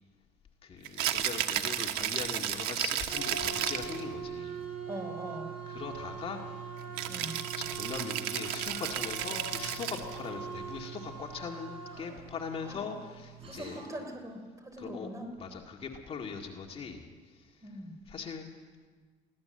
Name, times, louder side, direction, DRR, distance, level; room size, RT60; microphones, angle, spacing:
voice 1, 0.6-4.6 5.7-13.8 14.8-15.1 15.4-17.7 18.1-18.5, left 5 dB, 35° left, 1 dB, 2.0 m, -41 dB
Rattle (instrument), 0.8-4.0 7.0-10.2, right 11 dB, 85° right, 1.3 m, -33 dB
sound 1, 3.1-14.1, right 5 dB, 35° right, 7.6 m, -42 dB
voice 2, 4.9-5.6 7.1-7.5 12.6-12.8 13.5-15.3 17.6-18.0, right 1 dB, 20° right, 5 dB, 3.5 m, -42 dB
23.5 x 16.5 x 7.8 m, 1.4 s
cardioid pair, 140°, 16 cm